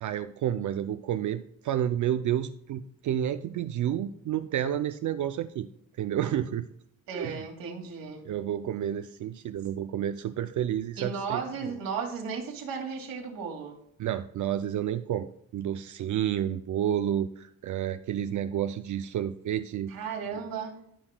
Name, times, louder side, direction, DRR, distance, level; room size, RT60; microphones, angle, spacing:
voice 1, 0.0-5.7 6.0-6.7 7.1-7.5 8.2-11.4 14.0-15.3 15.5-19.9, right 10 dB, 55° right, 10 dB, 0.4 m, -30 dB
voice 2, 7.1-8.2 11.0-13.8 19.9-20.8, right 5 dB, 75° right, 0 dB, 2.3 m, -35 dB
14.5 x 5.8 x 2.2 m, 0.71 s
cardioid pair, 155°, 35 cm